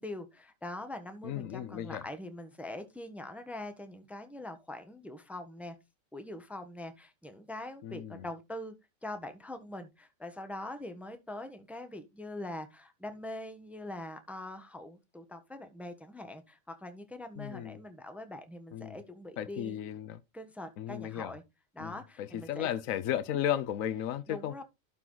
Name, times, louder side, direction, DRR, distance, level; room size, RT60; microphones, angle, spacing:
voice 1, 0.0-5.7 6.1-8.7 9.0-19.8 20.3-21.4 21.7-22.7 24.3-24.6, left 1 dB, ahead, 1.2 m, -43 dB
voice 2, 1.2-2.1 7.8-8.2 17.4-17.8 18.7-19.0 19.4-20.2 20.8-21.3 21.8-24.6, left 11 dB, 80° left, 1.1 m, -35 dB
12.5 x 4.6 x 3.9 m
omnidirectional pair, 1.4 m